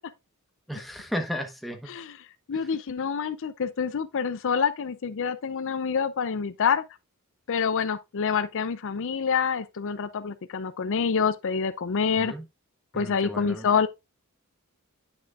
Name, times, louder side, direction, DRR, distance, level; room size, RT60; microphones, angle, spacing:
voice 1, 0.7-1.9 2.5-2.7 12.2-12.4 12.9-13.7, equal, ahead, 1.1 m, -34 dB
voice 2, 2.5-6.8 7.5-12.3 12.9-13.9, left 6 dB, 60° left, 0.5 m, -27 dB
9.7 x 6.1 x 2.4 m
head